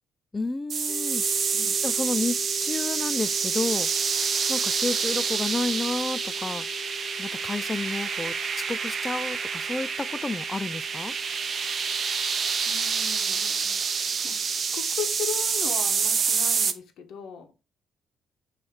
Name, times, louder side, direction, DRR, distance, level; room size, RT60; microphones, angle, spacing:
voice 1, 0.3-1.2 1.8-3.9 4.5-6.7 7.2-11.1, left 3 dB, 20° left, 0.4 m, -31 dB
sound 1, 0.7-16.7, right 6 dB, 45° right, 0.8 m, -27 dB
sound 2, 0.9-14.8, left 6 dB, 45° left, 0.8 m, -44 dB
voice 2, 12.7-13.8 14.2-17.5, left 8 dB, 75° left, 1.5 m, -38 dB
7.0 x 3.2 x 4.9 m
cardioid pair, 95°, 0 cm